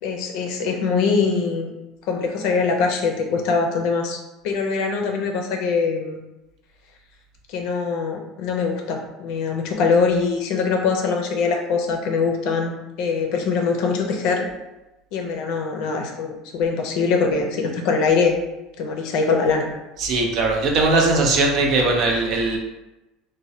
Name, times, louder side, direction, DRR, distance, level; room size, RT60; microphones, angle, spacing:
voice 1, 0.0-1.7 2.1-4.2 4.4-6.2 7.5-14.5 15.1-18.4 18.8-19.7, left 5 dB, 65° left, 2 dB, 0.5 m, -22 dB
voice 2, 20.0-22.6, right 2 dB, 50° right, 0 dB, 0.6 m, -19 dB
3.2 x 2.2 x 2.7 m, 1.0 s
supercardioid pair, 135°, 0 cm